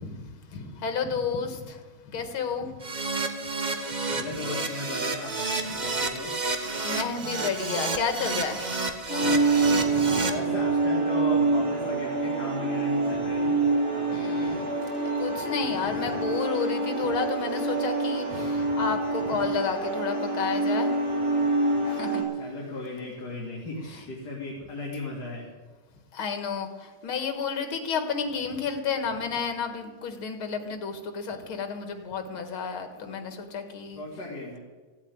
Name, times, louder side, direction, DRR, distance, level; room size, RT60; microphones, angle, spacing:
voice 1, 0.0-1.8 2.1-2.8 4.1-4.2 6.8-8.6 9.2-10.2 14.1-14.7 15.1-21.0 21.8-22.2 26.1-34.0, left 5 dB, 80° left, 7 dB, 2.4 m, -31 dB
Keyboard (musical), 2.8-10.3, right 3 dB, 25° right, 1.1 m, -30 dB
voice 2, 4.1-6.3 10.2-13.6 13.9-14.6 22.4-25.5 34.0-34.6, left 2 dB, 50° left, -3 dB, 3.0 m, -36 dB
sound 1, 9.1-22.2, right 3 dB, 5° right, 6.7 m, -26 dB
15.5 x 8.4 x 9.6 m, 1.3 s
omnidirectional pair, 2.2 m